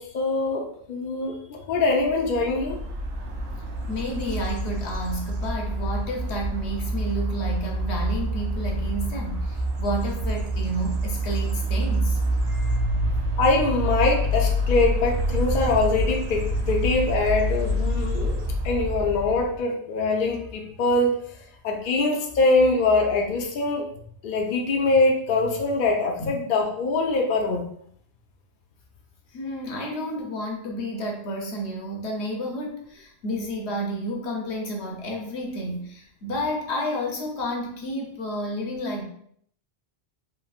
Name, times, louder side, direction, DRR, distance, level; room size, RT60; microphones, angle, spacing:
voice 1, 0.0-2.8 13.4-21.2 21.6-23.9 24.2-27.6, left 3 dB, 60° left, 1 dB, 0.6 m, -23 dB
sound 1, 2.0-19.6, right 1 dB, 75° right, 0.9 m, -27 dB
voice 2, 3.9-12.2 12.5-12.9 26.2-26.3 29.3-39.1, equal, 75° left, 1 dB, 1.0 m, -31 dB
3.1 x 3.0 x 2.3 m, 0.65 s
omnidirectional pair, 1.1 m